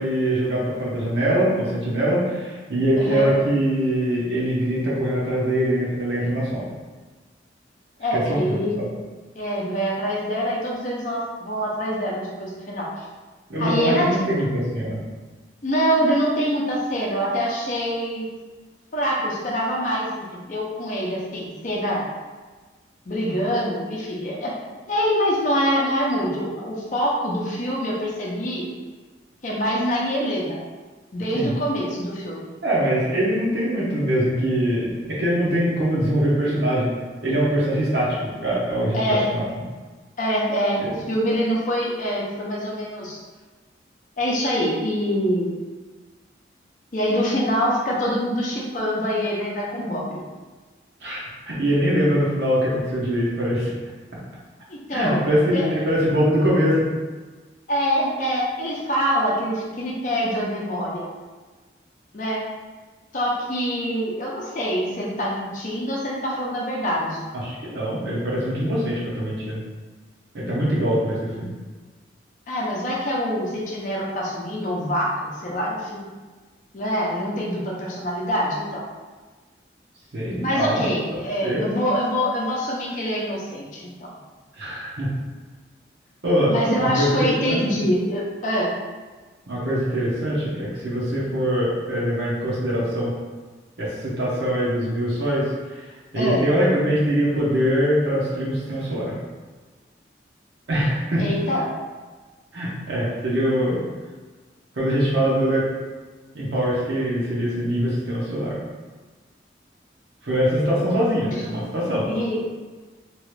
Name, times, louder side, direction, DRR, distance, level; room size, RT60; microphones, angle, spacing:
voice 1, 0.0-6.6 8.1-8.8 13.5-15.0 31.3-31.5 32.6-34.9 35.2-36.9 37.2-39.4 40.8-40.9 51.0-53.7 54.9-56.9 67.3-69.6 70.3-71.5 80.1-80.8 81.4-81.6 84.6-85.1 86.2-87.2 87.5-87.6 89.5-93.1 93.8-95.9 96.1-99.1 100.7-101.2 102.5-103.8 104.7-105.7 106.3-108.6 110.2-112.1, equal, 70° right, -7 dB, 0.8 m, -23 dB
voice 2, 3.0-3.3 8.0-8.8 9.4-13.0 13.6-14.1 15.6-18.3 18.9-22.0 23.1-24.5 24.9-28.7 29.4-30.6 31.1-32.5 38.9-39.3 40.2-43.2 44.2-45.5 46.9-50.2 54.7-55.7 57.7-61.1 62.1-62.4 63.1-67.3 72.5-76.1 76.7-78.8 80.4-83.9 86.5-88.7 96.2-96.4 101.2-101.6 111.5-111.6 112.0-112.4, equal, 45° left, -4 dB, 0.5 m, -25 dB
3.0 x 2.4 x 3.1 m, 1.3 s
head